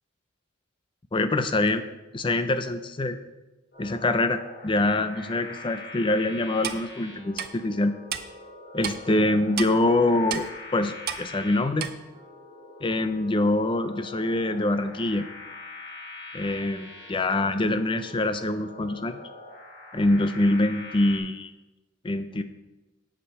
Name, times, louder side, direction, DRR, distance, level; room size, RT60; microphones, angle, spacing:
voice 1, 1.1-1.8 2.1-3.2 3.8-7.9 8.7-11.9 12.8-15.3 16.3-19.2 19.9-21.5 22.0-22.4, left 2 dB, 25° left, 10 dB, 0.4 m, -25 dB
sound 1, 3.7-21.2, left 2 dB, 50° left, 2.7 m, -44 dB
Clock, 6.6-6.8 7.4-7.5 8.1-8.2 8.8-9.0 9.6-9.7 10.3-10.5 11.1-11.2 11.8-11.9, right 9 dB, 45° right, 0.5 m, -30 dB
7.5 x 6.9 x 4.7 m, 1.1 s
head